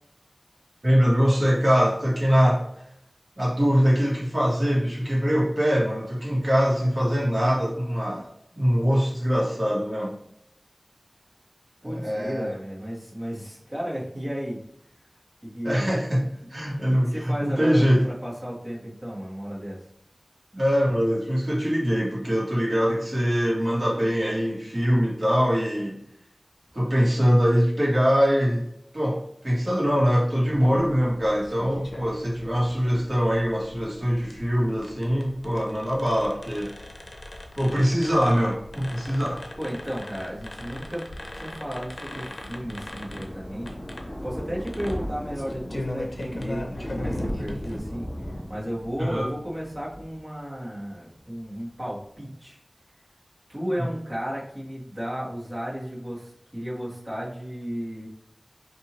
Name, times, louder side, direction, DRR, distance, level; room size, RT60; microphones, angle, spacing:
voice 1, 0.8-2.6 3.4-8.2 8.5-10.1 11.8-12.5 15.6-18.1 20.5-25.9 26.7-28.7 28.9-36.7 37.6-39.4 49.0-49.3, equal, 50° right, -5 dB, 1.4 m, -23 dB
voice 2, 11.8-14.6 15.4-16.0 16.9-19.8 39.0-39.1 39.6-43.7 44.2-52.6 53.5-58.1, equal, 35° right, -6 dB, 1.4 m, -34 dB
sound 1, 30.5-47.8, left 1 dB, 70° left, 0.5 m, -40 dB
Thunder, 41.5-50.9 51.2-51.5 51.8-51.9 52.0-52.1, equal, 35° left, 0.9 m, -37 dB
4.4 x 2.6 x 3.0 m, 0.73 s
wide cardioid pair, 55°, 0 cm